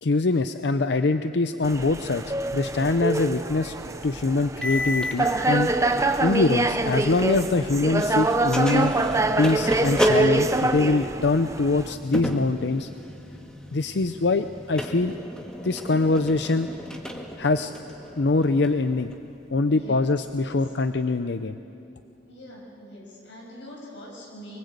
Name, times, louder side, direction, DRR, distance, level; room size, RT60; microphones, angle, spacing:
voice 1, 0.0-3.7 4.0-5.7 6.2-8.9 9.4-12.9 13.7-15.1 15.6-16.7 17.4-17.7 18.2-19.1 19.5-21.6, left 3 dB, 65° left, 10 dB, 0.6 m, -23 dB
sound 1, 1.6-11.9, right 2 dB, 15° right, 0.8 m, -25 dB
sound 2, 4.6-7.7 8.0-19.1, left 1 dB, 5° left, 1.8 m, -34 dB
voice 2, 19.5-20.0 20.4-20.7 22.2-24.6, equal, 80° left, -2 dB, 6.4 m, -43 dB
24.0 x 24.0 x 8.2 m, 2.8 s
head